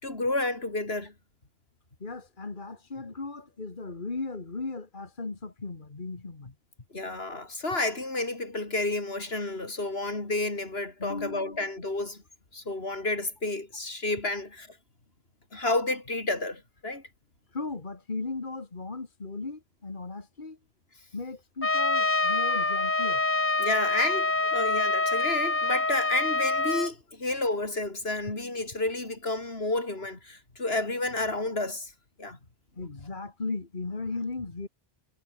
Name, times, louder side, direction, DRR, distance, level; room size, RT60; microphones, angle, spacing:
voice 1, 0.0-1.1 6.9-12.2 12.5-14.8 15.5-17.0 23.6-31.9 32.2-32.4, left 2 dB, 75° left, 4.2 m, -30 dB
voice 2, 2.0-6.6 11.0-11.7 17.5-20.6 21.1-23.2 32.8-34.7, left 3 dB, 50° left, 2.2 m, -36 dB
Trumpet, 21.6-26.9, left 2 dB, 15° left, 0.6 m, -26 dB
omnidirectional pair, 1.0 m